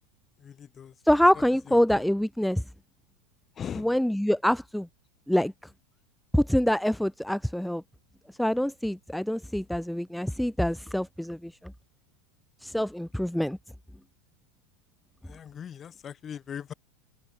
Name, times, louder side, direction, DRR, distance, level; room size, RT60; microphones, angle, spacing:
voice 1, 0.4-1.0 1.7-2.0 3.6-3.9 15.2-16.7, left 8 dB, 30° left, 5.3 m, -40 dB
voice 2, 1.0-2.6 3.8-4.9 5.3-5.5 6.3-7.8 8.3-11.7 12.6-13.6, equal, ahead, 0.4 m, -25 dB
hypercardioid pair, 85°, 0 cm